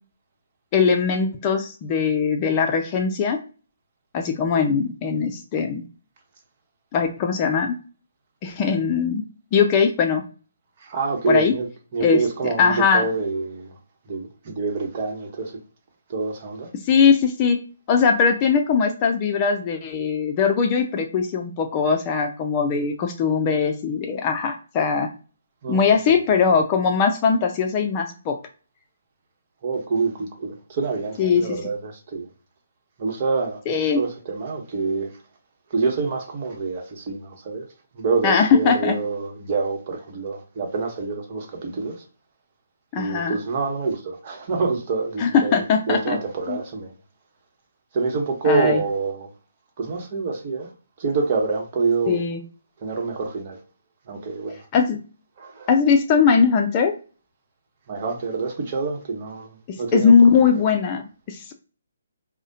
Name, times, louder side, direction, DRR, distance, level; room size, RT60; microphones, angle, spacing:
voice 1, 0.7-3.4 4.1-5.8 6.9-7.8 8.4-9.2 9.5-10.2 11.3-11.5 12.0-12.2 12.6-13.0 16.9-17.6 17.9-25.1 25.7-28.4 31.2-31.5 33.7-34.0 38.2-39.0 42.9-43.4 45.2-46.2 46.5-46.6 48.4-48.8 52.1-52.4 54.7-55.0 55.7-56.9 59.9-61.5, left 6 dB, 30° left, 0.5 m, -20 dB
voice 2, 10.8-11.7 11.9-13.7 14.1-15.6 16.1-16.7 25.6-26.2 29.6-32.3 33.0-33.6 34.0-35.1 35.7-37.6 37.9-41.9 43.0-46.9 47.9-49.3 49.8-50.7 51.0-52.2 52.8-53.6 54.1-54.6 55.4-55.7 57.9-59.5 59.8-60.6, right 4 dB, 40° right, 1.1 m, -26 dB
4.7 x 2.1 x 2.8 m
figure-of-eight pair, 145°, 0 cm